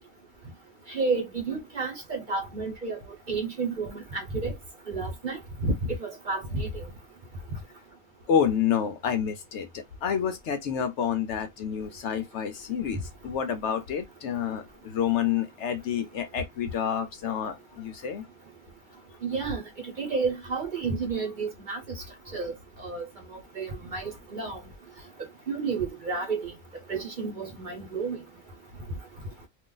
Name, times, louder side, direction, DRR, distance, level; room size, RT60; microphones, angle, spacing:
voice 1, 0.9-3.0 3.3-4.5 4.9-5.4 5.6-5.7 6.0-6.7 19.2-19.6 20.0-21.8 22.3-22.5 22.8-23.0 23.6-24.6 25.5-26.5 26.9-28.2, right 4 dB, 40° right, 1.0 m, -30 dB
voice 2, 8.3-18.2, left 8 dB, 65° left, 0.8 m, -29 dB
2.5 x 2.5 x 3.8 m
omnidirectional pair, 1.4 m